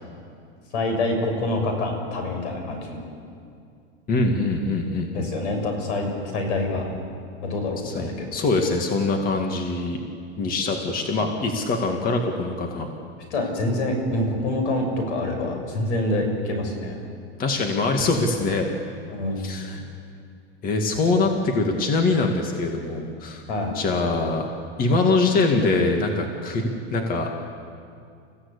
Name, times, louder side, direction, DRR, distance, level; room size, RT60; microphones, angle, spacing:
voice 1, 0.7-3.0 5.1-6.8 7.4-8.3 13.3-17.0 19.1-19.5 23.5-23.8, left 2 dB, 80° left, 4 dB, 6.9 m, -26 dB
voice 2, 4.1-5.3 7.8-10.0 10.4-12.9 17.4-18.7 19.4-19.8 20.6-23.4 23.7-24.5 24.8-27.4, left 3 dB, 25° left, 3 dB, 2.1 m, -23 dB
29.5 x 16.0 x 8.4 m, 2.4 s
supercardioid pair, 150°, 35 cm